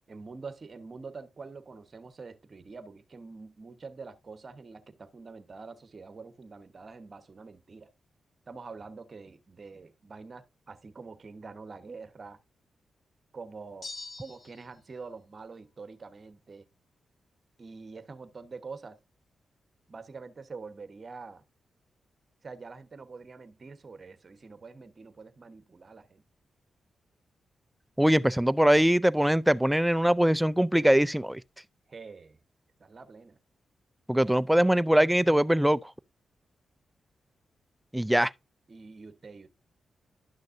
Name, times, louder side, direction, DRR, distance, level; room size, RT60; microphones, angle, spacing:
voice 1, 0.1-7.9 8.5-12.4 13.3-13.9 14.2-16.7 17.6-19.0 19.9-21.4 22.4-26.2 31.9-32.4 32.8-33.4 38.7-39.5, right 4 dB, 45° right, 1.1 m, -45 dB
sound 1, 13.8-14.8, left 3 dB, 50° left, 1.1 m, -43 dB
voice 2, 28.0-31.4 34.1-35.9 37.9-38.3, equal, 5° right, 0.4 m, -22 dB
11.5 x 6.4 x 2.6 m
cardioid pair, 60°, 0 cm